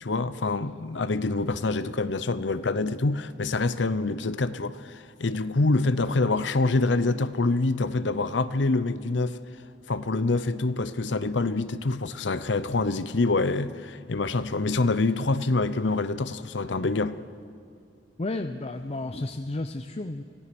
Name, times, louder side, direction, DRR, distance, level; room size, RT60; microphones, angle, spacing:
voice 1, 0.0-9.4 9.9-17.2, left 3 dB, 70° left, 0.8 m, -26 dB
voice 2, 18.2-20.2, left 2 dB, 35° left, 0.6 m, -32 dB
25.5 x 17.5 x 6.1 m
head